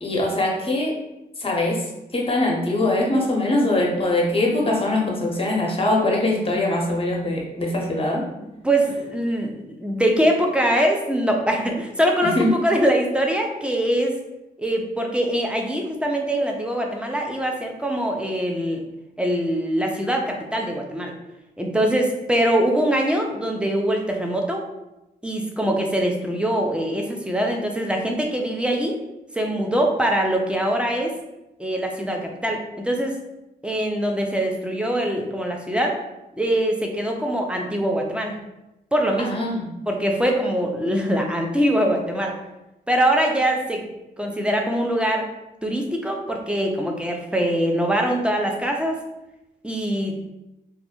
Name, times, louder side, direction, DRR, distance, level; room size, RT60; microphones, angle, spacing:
voice 1, 0.0-0.9 1.4-1.8 2.1-8.2 12.2-12.5 39.2-39.7, left 2 dB, 30° left, -1 dB, 0.8 m, -22 dB
voice 2, 8.6-14.2 14.6-18.8 19.2-21.1 21.6-24.6 25.2-29.0 29.3-31.1 31.6-33.2 33.6-36.0 36.4-38.4 38.9-39.4 39.9-42.4 42.9-43.9 44.2-45.3 45.6-49.0 49.6-50.3, right 1 dB, 5° right, 1 dB, 0.5 m, -23 dB
2.4 x 2.0 x 3.0 m, 0.93 s
supercardioid pair, 40°, 20 cm